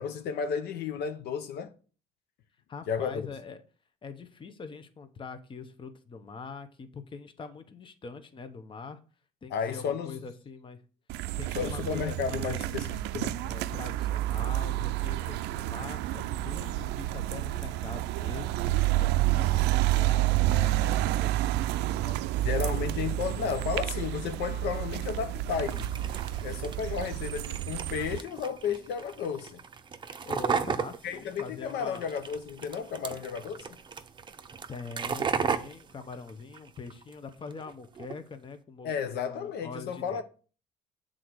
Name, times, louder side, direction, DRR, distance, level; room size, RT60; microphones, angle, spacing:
voice 1, 0.0-1.7 2.9-3.3 9.5-10.2 11.5-13.4 22.4-25.9 26.4-29.6 31.0-33.8 38.8-40.2, left 7 dB, 75° left, 0.8 m, -33 dB
voice 2, 2.7-3.6 4.0-9.0 9.4-10.8 11.4-12.7 13.4-18.5 19.0-23.1 30.2-32.0 34.7-40.2, left 4 dB, 30° left, 0.9 m, -43 dB
sound 1, 11.1-28.2, right 15 dB, 85° right, 0.4 m, -29 dB
sound 2, 25.7-37.1 37.5-38.2, right 6 dB, 30° right, 0.6 m, -36 dB
7.8 x 3.9 x 6.2 m
cardioid pair, 110°, 17 cm